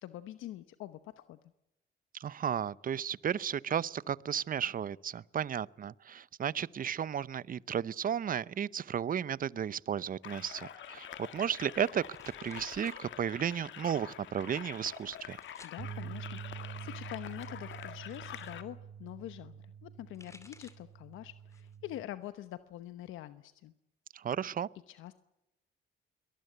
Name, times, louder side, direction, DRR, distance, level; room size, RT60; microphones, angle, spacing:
voice 1, 0.0-1.4 15.6-23.7 24.9-25.2, left 14 dB, 90° left, 1.0 m, -45 dB
voice 2, 2.2-12.0 12.4-15.4 24.1-24.7, right 8 dB, 45° right, 0.7 m, -34 dB
sound 1, 10.2-18.6, left 10 dB, 70° left, 1.9 m, -46 dB
sound 2, 11.3-13.0 13.3-14.0 14.7-15.8 16.8-18.6 19.8-21.0 21.4-21.9 22.2-23.2, left 2 dB, 15° left, 2.5 m, -60 dB
sound 3, 15.8-22.0, right 8 dB, 60° right, 2.1 m, -46 dB
23.0 x 19.5 x 8.0 m
cardioid pair, 90°, 20 cm